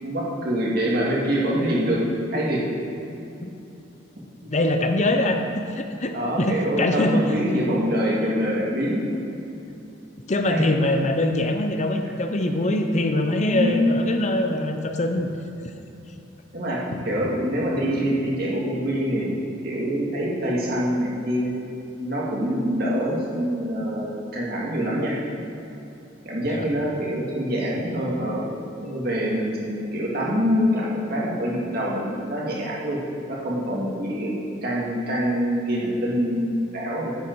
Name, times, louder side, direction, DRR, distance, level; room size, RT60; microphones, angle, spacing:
voice 1, 0.0-2.0 2.3-2.6 6.1-9.0 10.5-10.7 13.5-13.9 16.5-19.3 19.6-21.5 22.0-25.2 26.3-28.4 28.7-33.0 33.3-34.3 34.6-37.1, equal, 55° right, -4 dB, 2.2 m, -25 dB
voice 2, 4.5-7.4 10.3-15.3 26.4-26.7, left 1 dB, 40° left, 5 dB, 0.7 m, -23 dB
10.5 x 8.7 x 4.7 m, 2.8 s
head